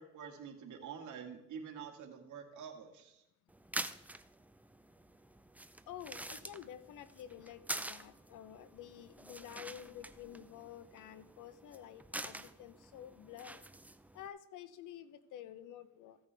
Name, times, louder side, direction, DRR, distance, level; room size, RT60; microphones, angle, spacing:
voice 1, 0.0-3.2, right 7 dB, 75° right, 3 dB, 1.9 m, -47 dB
sound 1, 3.5-14.3, right 1 dB, 5° right, 0.5 m, -47 dB
voice 2, 5.9-13.6 14.1-16.2, left 10 dB, 85° left, 13 dB, 0.8 m, -50 dB
15.5 x 8.7 x 3.4 m, 0.86 s
cardioid pair, 90°, 30 cm